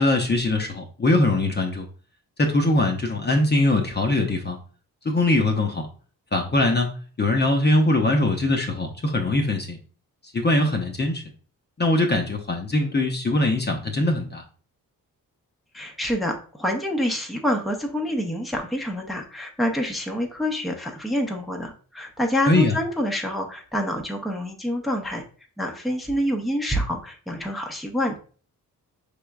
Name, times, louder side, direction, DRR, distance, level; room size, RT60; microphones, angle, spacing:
voice 1, 0.0-1.9 2.4-4.6 5.0-5.9 6.3-6.9 7.2-9.8 10.3-11.2 11.8-14.4 22.5-22.7, left 2 dB, 30° left, 2 dB, 0.7 m, -22 dB
voice 2, 15.7-25.2 25.6-28.2, equal, ahead, 2 dB, 0.7 m, -27 dB
5.0 x 3.3 x 2.3 m, 0.41 s
cardioid pair, 85°, 35 cm